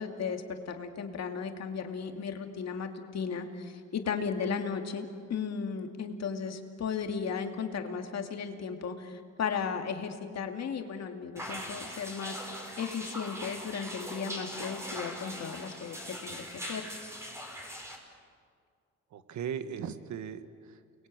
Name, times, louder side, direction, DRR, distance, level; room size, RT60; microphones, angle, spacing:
voice 1, 0.0-17.2, left 6 dB, 60° left, 5 dB, 2.6 m, -35 dB
sound 1, 11.4-18.0, equal, 10° right, 5.4 m, -41 dB
voice 2, 19.1-21.1, right 8 dB, 70° right, 11 dB, 1.7 m, -39 dB
29.5 x 21.5 x 8.9 m, 2.2 s
cardioid pair, 90°, 30 cm